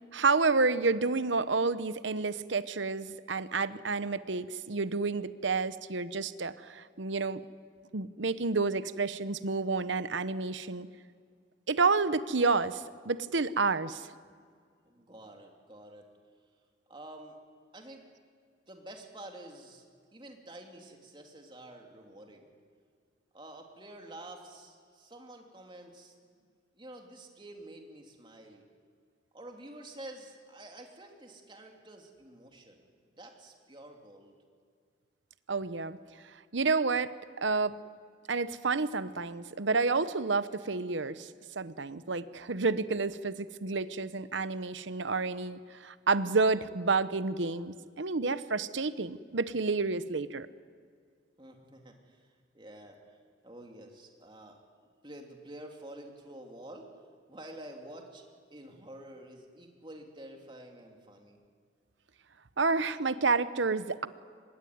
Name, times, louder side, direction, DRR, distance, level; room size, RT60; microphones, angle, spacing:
voice 1, 0.0-7.4 7.9-10.9 11.7-14.1 35.5-36.0 36.5-37.8 38.3-41.3 41.6-50.5 62.6-64.1, right 4 dB, 75° right, 14 dB, 0.9 m, -30 dB
voice 2, 14.8-16.1 16.9-17.4 17.7-18.0 18.7-19.9 20.1-22.5 23.3-26.1 26.8-28.7 29.3-32.9 33.2-34.4 35.9-36.0 51.4-53.2 53.4-54.6 55.0-57.0 57.3-61.4, right 1 dB, 25° right, 2 dB, 3.0 m, -49 dB
25.0 x 20.0 x 9.5 m, 2.1 s
head